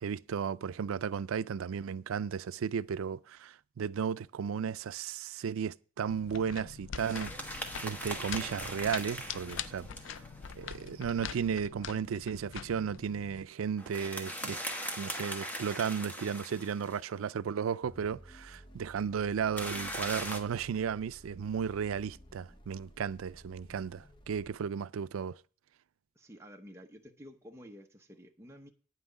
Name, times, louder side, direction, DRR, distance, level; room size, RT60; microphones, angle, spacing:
voice 1, 0.0-7.3 7.8-9.9 10.5-14.6 15.0-25.4, right 7 dB, 85° right, 0.4 m, -34 dB
sound 1, 6.1-13.4, left 8 dB, 65° left, 0.4 m, -44 dB
sound 2, 7.0-11.3 13.8-17.1 19.6-20.4, equal, 10° left, 1.2 m, -40 dB
sound 3, 17.8-24.5, equal, 25° left, 0.9 m, -54 dB
voice 2, 26.1-28.7, equal, 15° right, 0.8 m, -51 dB
9.4 x 5.9 x 8.1 m
head